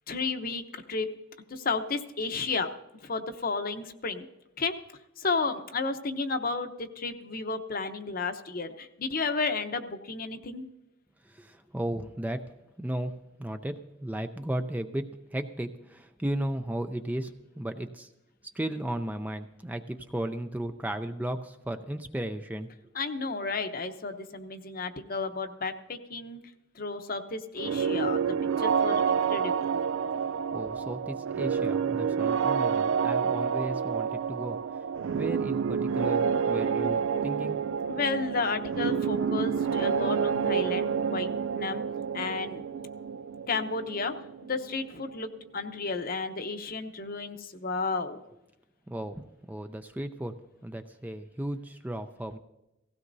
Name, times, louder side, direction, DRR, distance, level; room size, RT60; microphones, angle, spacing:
voice 1, 0.1-0.6 0.9-1.1 1.5-2.7 3.0-4.3 4.6-4.7 5.2-10.6 22.9-26.4 26.8-28.2 28.6-29.7 37.9-41.8 42.1-42.6 43.5-44.1 44.5-48.2, left 4 dB, 45° left, 8 dB, 0.9 m, -32 dB
voice 2, 11.2-12.5 12.8-18.1 18.5-22.7 30.1-34.8 35.1-37.6 48.9-52.4, right 1 dB, 10° right, 7 dB, 0.4 m, -35 dB
sound 1, 27.6-45.2, right 6 dB, 75° right, 0.3 m, -29 dB
17.5 x 16.0 x 2.7 m, 0.93 s
head